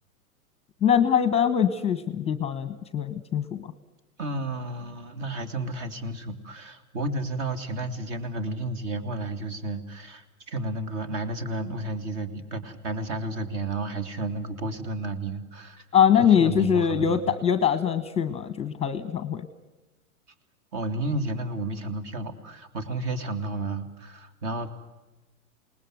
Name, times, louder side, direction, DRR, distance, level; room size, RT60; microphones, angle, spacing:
voice 1, 0.8-3.7 15.9-19.5, left 8 dB, 15° left, 13 dB, 1.1 m, -23 dB
voice 2, 4.2-15.8 16.1-17.3 20.7-24.7, right 2 dB, 40° right, 10 dB, 2.9 m, -32 dB
28.0 x 20.0 x 7.9 m, 1.1 s
hypercardioid pair, 110°, 44 cm